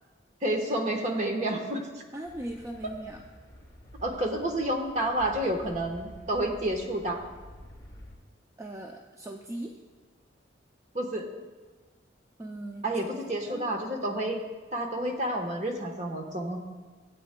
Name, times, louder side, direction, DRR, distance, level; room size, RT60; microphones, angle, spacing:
voice 1, 0.4-1.8 4.0-7.2 10.9-11.2 12.8-14.4 14.7-16.6, right 1 dB, 40° right, 3 dB, 1.1 m, -29 dB
voice 2, 2.1-3.2 4.3-4.4 8.6-9.8 12.4-12.9 13.5-13.7, right 1 dB, 15° right, 2 dB, 0.4 m, -39 dB
sound 1, 2.2-8.1, left 1 dB, 15° left, 2.9 m, -49 dB
16.0 x 8.7 x 2.2 m, 1.3 s
head